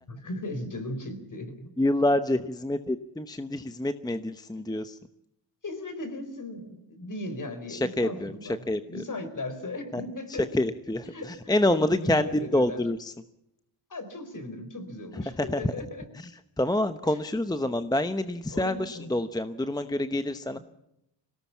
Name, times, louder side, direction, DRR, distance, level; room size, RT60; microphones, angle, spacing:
voice 1, 0.1-1.7 4.6-4.7 5.6-10.5 11.0-12.8 13.9-16.1 17.1-17.2 18.5-19.1, left 2 dB, 40° left, 9 dB, 4.5 m, -37 dB
voice 2, 1.8-5.0 7.7-8.8 9.9-10.0 10.5-13.1 15.1-15.6 16.1-16.3 16.6-20.6, left 1 dB, 10° left, 10 dB, 0.9 m, -27 dB
21.0 x 18.0 x 7.2 m, 0.84 s
cardioid pair, 80°, 47 cm